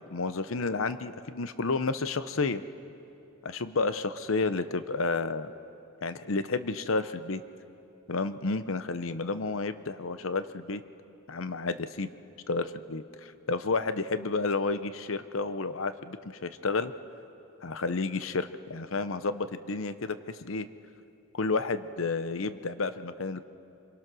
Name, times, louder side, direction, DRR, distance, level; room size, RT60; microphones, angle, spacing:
voice 1, 0.0-2.6 3.4-5.5 6.0-7.4 8.1-10.8 11.3-12.1 12.5-16.9 17.6-20.7 21.3-23.4, left 3 dB, 70° left, 12 dB, 0.8 m, -31 dB
27.0 x 22.0 x 6.2 m, 2.8 s
head